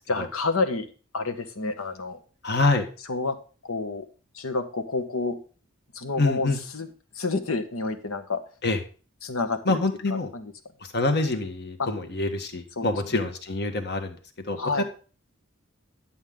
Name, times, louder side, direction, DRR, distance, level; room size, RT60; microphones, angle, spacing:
voice 1, 0.1-0.9 1.1-2.2 3.1-3.4 3.6-4.1 4.3-5.4 5.9-6.9 7.1-8.4 9.2-9.8 10.1-10.5 11.8-11.9 12.8-12.9 14.6-14.8, left 3 dB, 85° left, 8 dB, 1.3 m, -29 dB
voice 2, 2.4-2.8 6.2-6.6 8.6-8.8 9.7-10.3 10.9-14.2 14.5-14.8, left 2 dB, 55° left, 7 dB, 1.4 m, -25 dB
11.0 x 7.3 x 3.7 m, 0.37 s
head